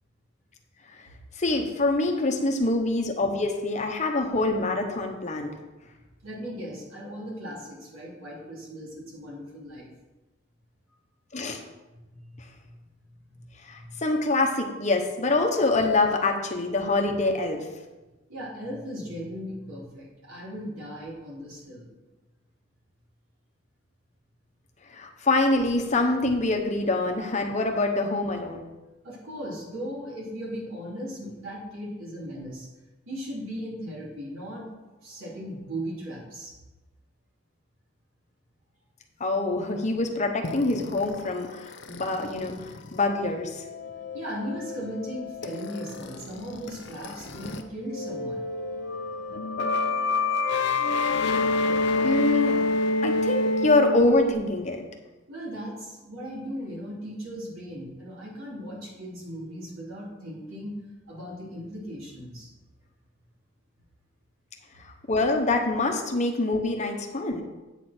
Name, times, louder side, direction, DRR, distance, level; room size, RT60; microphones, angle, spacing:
voice 1, 1.4-5.5 11.3-11.6 13.7-17.6 24.9-28.7 39.2-42.5 42.9-43.6 52.0-52.6 53.0-54.8 65.1-67.4, left 2 dB, 35° left, 3 dB, 1.0 m, -25 dB
voice 2, 6.2-9.9 12.3-12.4 13.3-13.5 13.8-13.9 18.3-21.9 29.0-32.7 33.1-34.6 34.9-36.5 44.1-48.4 55.3-60.8 61.1-62.5, equal, 85° right, -4 dB, 3.2 m, -37 dB
sound 1, 40.4-47.6 47.9-54.3, left 3 dB, 55° left, 0.6 m, -28 dB
9.1 x 6.5 x 4.4 m, 1.1 s
head